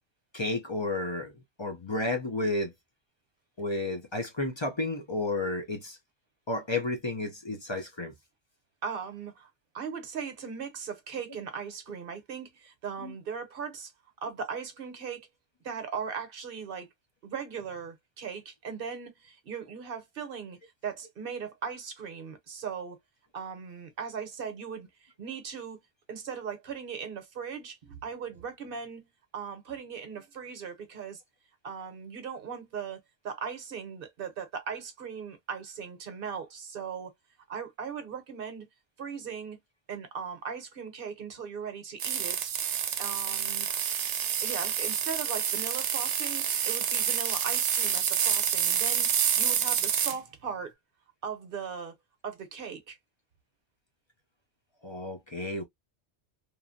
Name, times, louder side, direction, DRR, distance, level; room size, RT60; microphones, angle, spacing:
voice 1, 0.3-1.3 1.6-2.7 3.6-6.0 6.5-8.1 13.0-13.1 54.8-55.6, left 2 dB, 35° left, 0.4 m, -32 dB
voice 2, 8.8-9.5 9.7-13.9 14.2-15.3 15.6-16.9 17.2-23.0 23.3-25.8 26.1-29.1 29.3-31.2 31.6-33.0 33.2-37.1 37.5-38.7 39.0-39.6 39.9-42.5 43.0-43.7 44.4-50.7 51.2-51.9 52.2-53.0, right 6 dB, 55° right, 1.0 m, -38 dB
sound 1, 42.0-50.2, right 9 dB, 85° right, 0.9 m, -28 dB
3.0 x 2.1 x 2.5 m
omnidirectional pair, 1.2 m